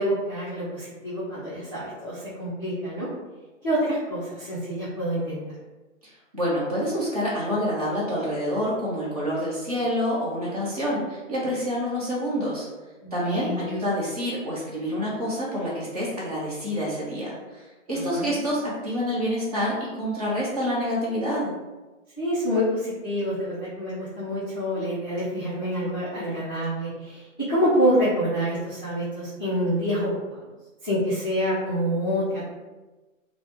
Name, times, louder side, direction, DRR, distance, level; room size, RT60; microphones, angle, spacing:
voice 1, 0.0-3.1 3.6-5.4 13.0-13.7 17.9-18.5 22.2-30.4 30.8-32.4, equal, 15° left, -15 dB, 0.5 m, -27 dB
voice 2, 6.3-12.7 13.1-21.5, equal, 30° right, -7 dB, 0.8 m, -27 dB
3.5 x 2.0 x 3.0 m, 1.2 s
hypercardioid pair, 175°, 40 cm